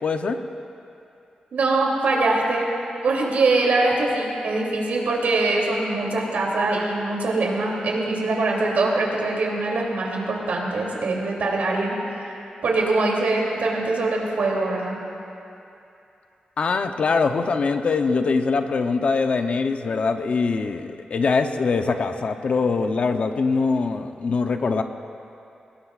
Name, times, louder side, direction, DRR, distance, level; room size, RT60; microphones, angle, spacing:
voice 1, 0.0-0.4 16.6-24.8, left 4 dB, 50° left, 6 dB, 0.8 m, -23 dB
voice 2, 1.5-2.7 3.0-11.9 12.2-12.4 12.6-15.0, right 2 dB, 90° right, -2 dB, 3.0 m, -23 dB
23.5 x 20.0 x 2.5 m, 2.7 s
wide cardioid pair, 175°, 3 cm